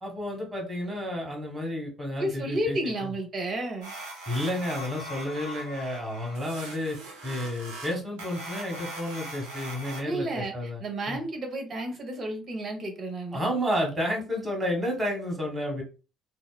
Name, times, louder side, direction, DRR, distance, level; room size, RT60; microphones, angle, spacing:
voice 1, 0.0-3.1 4.3-7.0 7.2-11.2 13.3-15.8, equal, 25° right, 1 dB, 1.4 m, -31 dB
voice 2, 2.2-3.9 10.0-10.5 10.8-13.4, right 1 dB, 45° right, 4 dB, 0.8 m, -31 dB
sound 1, 3.8-10.0, right 1 dB, 75° right, 0.6 m, -41 dB
2.8 x 2.0 x 2.3 m, 0.33 s
hypercardioid pair, 55°, 0 cm